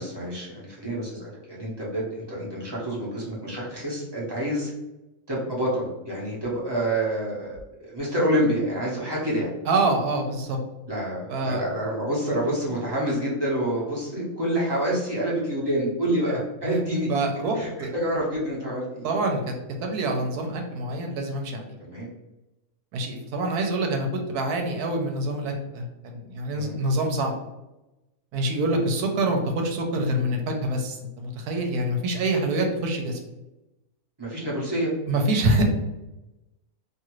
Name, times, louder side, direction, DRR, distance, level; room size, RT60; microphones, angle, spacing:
voice 1, 0.0-4.7 5.3-9.5 10.9-17.1 17.5-19.1 21.8-22.1 26.5-26.8 34.2-34.9, right 1 dB, 25° right, -6 dB, 0.6 m, -27 dB
voice 2, 9.7-10.6 11.3-11.6 16.6-16.8 17.1-17.9 19.0-19.5 19.8-21.6 22.9-27.4 28.3-33.2 35.1-35.6, right 2 dB, 85° right, 3 dB, 1.1 m, -26 dB
2.7 x 2.4 x 3.0 m, 0.97 s
omnidirectional pair, 1.6 m